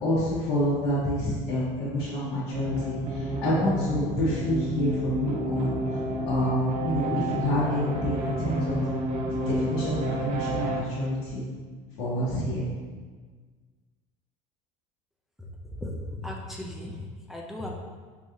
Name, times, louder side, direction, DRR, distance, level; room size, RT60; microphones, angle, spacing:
voice 1, 0.0-6.0 6.3-8.8 9.3-11.5 12.0-12.7, equal, 75° left, -10 dB, 1.1 m, -28 dB
sound 1, 2.5-10.8, equal, 45° right, 0.7 m, -30 dB
voice 2, 15.7-17.0 17.3-17.7, left 1 dB, ahead, -2 dB, 0.4 m, -36 dB
4.0 x 2.8 x 2.4 m, 1.5 s
supercardioid pair, 100°, 16 cm